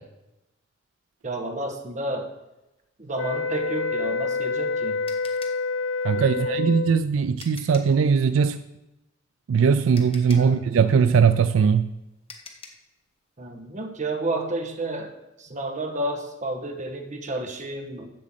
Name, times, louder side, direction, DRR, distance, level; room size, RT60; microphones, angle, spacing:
voice 1, 1.2-2.3 3.0-5.0 6.1-6.8 10.3-10.6 13.4-18.1, right 2 dB, 40° right, 4 dB, 1.2 m, -31 dB
sound 1, 3.1-7.1, left 4 dB, 80° left, 0.5 m, -27 dB
sound 2, 4.2-8.0 9.4-9.5 9.9-12.9, left 4 dB, 30° left, 1.0 m, -46 dB
voice 2, 6.0-8.6 9.5-11.9, right 6 dB, 85° right, 12 dB, 0.4 m, -20 dB
7.7 x 6.3 x 7.3 m, 0.99 s
head